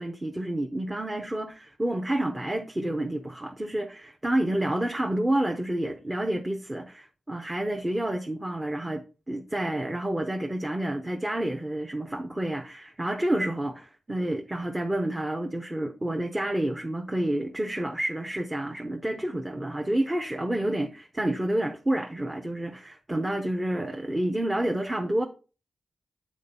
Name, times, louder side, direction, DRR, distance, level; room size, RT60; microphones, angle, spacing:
voice 1, 0.0-25.2, right 1 dB, 15° right, 0.8 m, -29 dB
8.4 x 4.1 x 5.4 m
wide cardioid pair, 110°, 0 cm